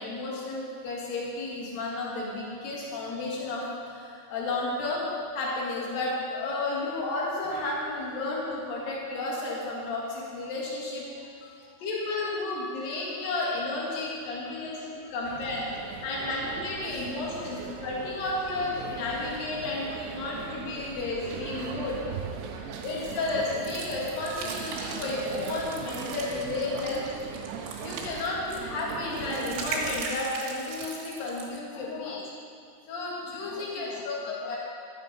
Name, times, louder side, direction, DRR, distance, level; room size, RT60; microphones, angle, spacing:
voice 1, 0.0-5.0 5.3-11.0 11.8-15.7 16.0-22.0 22.7-27.0 27.8-32.2 32.9-34.6, left 2 dB, 55° left, -4 dB, 3.0 m, -32 dB
voice 2, 11.1-11.8 12.9-13.2 14.4-15.2 16.0-16.1 16.9-17.8 19.1-19.2 22.5-22.9 27.6-28.2 31.7-32.4 33.3-34.6, left 8 dB, 85° left, 4 dB, 2.5 m, -49 dB
sound 1, 15.2-30.0, right 7 dB, 90° right, 2.5 m, -40 dB
sound 2, 22.9-31.6, right 4 dB, 75° right, 3.6 m, -39 dB
13.0 x 7.8 x 5.5 m, 2.4 s
omnidirectional pair, 5.8 m